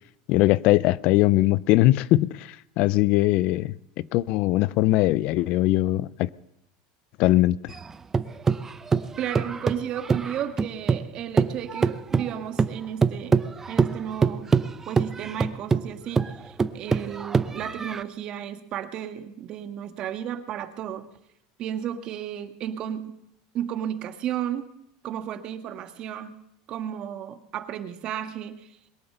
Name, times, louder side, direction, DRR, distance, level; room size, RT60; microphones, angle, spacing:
voice 1, 0.3-3.7 4.1-6.3 7.2-7.7, left 17 dB, 60° left, 0.5 m, -21 dB
sound 1, 7.7-11.1 11.4-18.0, right 5 dB, 20° right, 0.6 m, -24 dB
voice 2, 9.2-13.4 13.7-14.6 14.9-21.1 21.6-23.2 23.5-24.7 25.0-26.4 26.7-28.7, right 10 dB, 45° right, 1.6 m, -33 dB
22.0 x 8.7 x 6.8 m
supercardioid pair, 110°, 2 cm